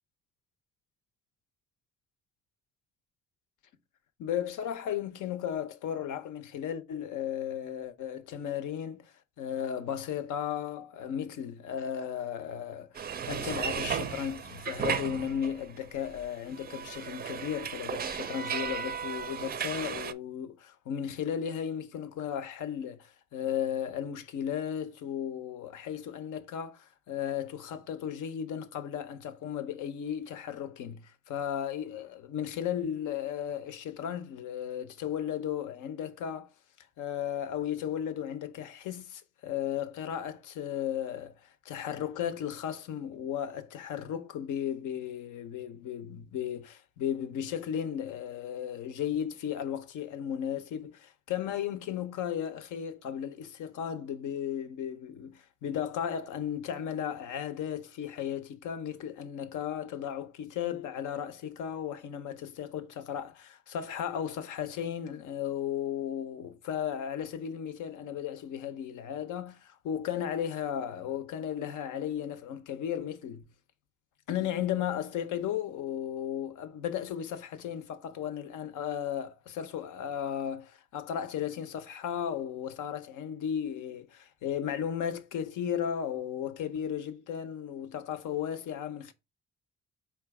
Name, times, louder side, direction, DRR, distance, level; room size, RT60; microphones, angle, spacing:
voice 1, 4.2-12.9 13.3-36.5 37.0-41.3 41.6-73.4 74.3-89.1, left 9 dB, 80° left, 0.7 m, -35 dB
sound 1, 12.9-15.8 16.0-20.1, right 7 dB, 30° right, 0.4 m, -35 dB
4.4 x 2.4 x 4.6 m
cardioid pair, 90°, 30 cm